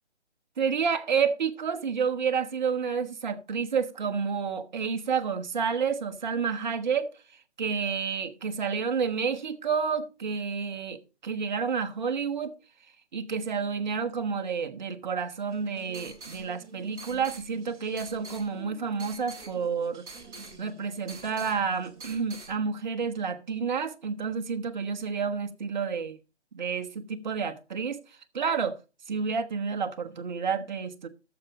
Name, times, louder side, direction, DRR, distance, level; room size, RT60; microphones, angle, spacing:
voice 1, 0.6-7.1 7.6-12.5 13.1-20.0 20.6-26.2 26.5-28.0 28.3-28.8 29.1-31.1, right 6 dB, 40° right, 1.0 m, -30 dB
sound 1, 15.5-22.5, right 3 dB, 10° right, 1.8 m, -46 dB
12.0 x 7.1 x 4.1 m
figure-of-eight pair, 145°, 34 cm